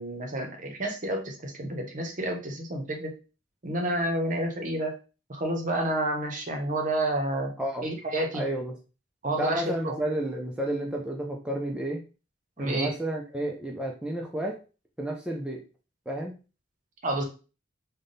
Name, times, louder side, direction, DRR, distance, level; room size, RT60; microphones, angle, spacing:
voice 1, 0.0-3.2 3.6-5.0 5.3-7.5 7.8-8.4 9.2-10.0 12.6-12.9 17.0-17.2, right 1 dB, 45° right, 3 dB, 0.8 m, -29 dB
voice 2, 7.6-7.9 8.3-8.7 9.4-12.0 12.6-14.6 15.0-15.6 16.1-16.4, right 1 dB, 5° right, -1 dB, 0.4 m, -31 dB
3.4 x 2.2 x 3.9 m, 0.33 s
head